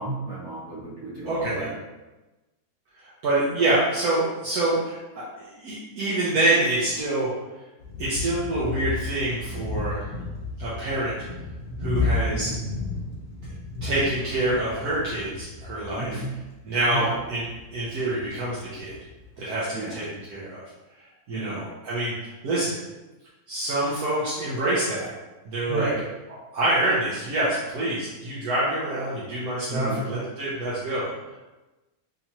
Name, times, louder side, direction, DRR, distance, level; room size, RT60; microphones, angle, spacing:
voice 1, 0.0-1.8 12.2-12.6 15.9-16.3 16.9-17.2 19.7-20.0 21.3-21.6 25.7-26.0 29.7-30.0, right 2 dB, 45° right, -10 dB, 1.9 m, -31 dB
voice 2, 1.3-1.7 3.0-7.3 8.0-10.1 10.6-11.1 11.8-12.5 13.8-16.2 16.6-19.0 19.4-20.6 21.3-22.7 23.5-25.1 25.4-25.9 26.5-31.1, right 1 dB, 70° right, -9 dB, 1.3 m, -26 dB
sound 1, 7.8-19.3, left 3 dB, 40° left, 0.9 m, -33 dB
3.7 x 2.9 x 2.9 m, 1.1 s
omnidirectional pair, 1.7 m